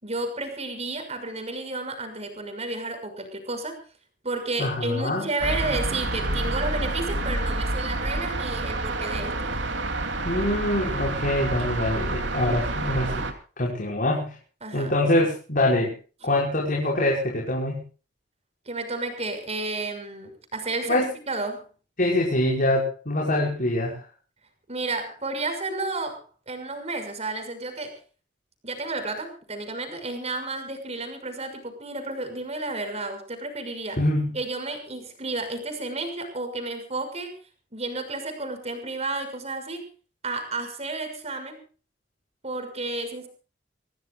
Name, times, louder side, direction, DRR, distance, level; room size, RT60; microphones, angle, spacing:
voice 1, 0.0-3.8 4.2-9.5 14.6-14.9 18.7-21.0 21.3-21.6 24.7-28.0 28.6-34.0 34.3-37.3 37.7-39.8 40.2-41.6 42.4-43.3, right 2 dB, 35° right, 7 dB, 6.1 m, -32 dB
voice 2, 4.6-5.3 10.2-13.2 13.6-14.4 14.7-15.9 16.2-17.8 20.9-21.1 22.0-24.0 34.0-34.4, left 1 dB, 50° left, -2 dB, 5.5 m, -24 dB
sound 1, 5.4-13.3, right 2 dB, 85° right, 3.1 m, -28 dB
27.0 x 17.5 x 2.5 m, 0.37 s
head